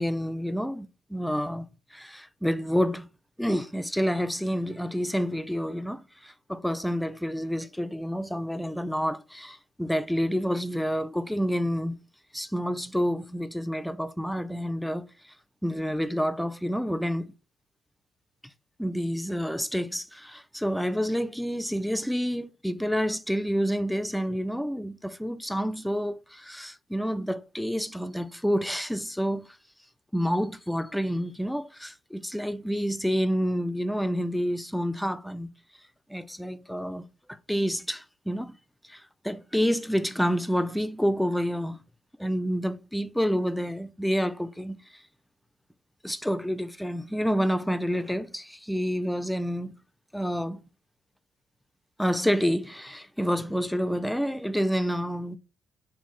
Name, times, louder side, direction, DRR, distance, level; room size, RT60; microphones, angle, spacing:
voice 1, 0.0-1.7 1.9-3.1 3.4-12.0 12.3-15.1 15.6-17.3 18.8-29.5 30.1-35.5 36.1-38.5 38.9-41.8 42.2-44.8 46.0-49.8 50.1-50.6 52.0-55.4, equal, 5° left, 0.4 m, -28 dB
4.4 x 2.8 x 3.1 m
cardioid pair, 90°, 0 cm